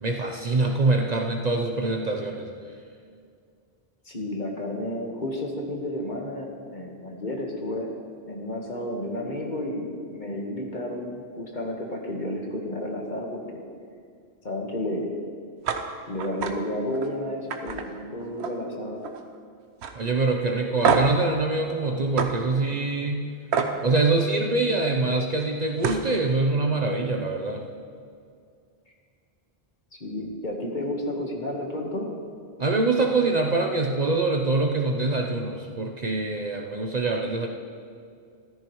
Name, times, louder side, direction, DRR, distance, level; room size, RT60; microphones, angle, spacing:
voice 1, 0.0-2.5 20.0-23.3 23.8-27.6 32.6-37.5, right 3 dB, 45° right, 2 dB, 0.8 m, -24 dB
voice 2, 4.0-7.9 8.3-13.4 14.4-15.1 16.1-19.0 30.0-32.1, left 1 dB, 45° left, 0 dB, 1.5 m, -31 dB
sound 1, 15.6-15.8 16.2-16.5 16.9-17.1 17.5-18.7 19.0-19.4 19.8-19.9 20.8-21.2 22.2-22.3 23.5-23.7 25.4-25.5 25.8-26.1, right 6 dB, 85° right, 1.1 m, -25 dB
14.0 x 13.5 x 3.1 m, 2.3 s
omnidirectional pair, 1.1 m